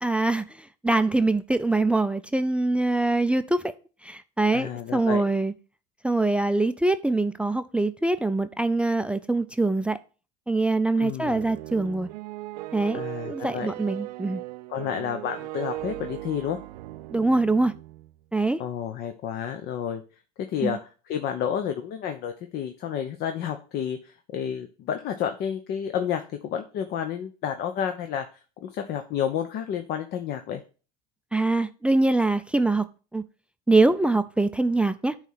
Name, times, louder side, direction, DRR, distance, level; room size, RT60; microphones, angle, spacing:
voice 1, 0.0-3.7 4.0-5.5 6.0-10.0 10.5-12.1 12.7-14.4 17.1-17.7 18.3-18.6 20.6-20.8 31.3-32.8 33.1-33.2 33.7-35.2, right 2 dB, 5° right, 0.4 m, -24 dB
voice 2, 4.5-5.2 11.0-11.4 12.9-13.7 14.7-16.6 18.6-20.0 20.5-28.3 28.6-30.6, left 9 dB, 55° left, 0.9 m, -30 dB
sound 1, 11.2-18.2, right 17 dB, 85° right, 0.5 m, -38 dB
9.0 x 3.3 x 5.7 m
supercardioid pair, 95°, 20 cm